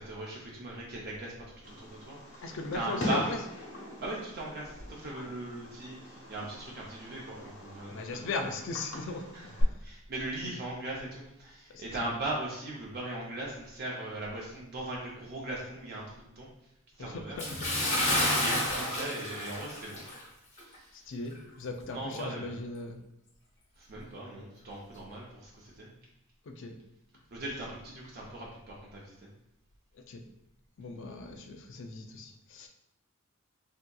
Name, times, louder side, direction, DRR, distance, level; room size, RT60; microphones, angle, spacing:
voice 1, 0.0-1.3 1.7-3.2 4.0-8.5 9.3-9.5 9.8-16.5 17.0-17.4 18.1-20.0 20.6-21.1 21.9-22.5 23.8-25.9 27.3-29.3, right 1 dB, 50° right, -3 dB, 0.5 m, -39 dB
Fireworks, 1.6-9.6, left 1 dB, 80° left, 1.1 m, -41 dB
voice 2, 2.4-3.4 5.1-5.4 7.9-9.3 9.6-9.7 10.4-10.5 11.7-12.1 17.0-18.6 20.9-23.0 26.4-26.8 29.9-30.2 30.8-32.7, left 3 dB, 60° left, 4 dB, 0.4 m, -39 dB
Bathtub (filling or washing) / Splash splatter, 17.4-20.3 20.6-20.8 21.3-21.4, left 1 dB, 35° left, 0.7 m, -30 dB
3.4 x 2.7 x 2.2 m, 0.81 s
head